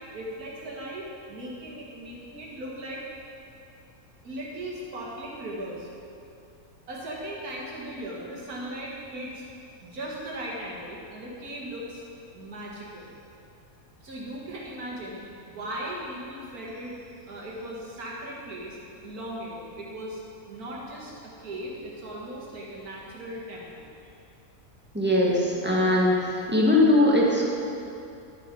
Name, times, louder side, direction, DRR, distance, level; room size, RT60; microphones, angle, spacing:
voice 1, 0.0-3.0 4.2-5.9 6.9-9.4 9.8-12.0 12.3-13.1 14.0-17.0 17.2-20.2 20.5-23.9, right 1 dB, 75° right, -4 dB, 2.2 m, -38 dB
voice 2, 24.9-27.4, left 1 dB, 5° right, -4 dB, 1.4 m, -21 dB
11.5 x 6.7 x 5.3 m, 2.6 s
omnidirectional pair, 1.6 m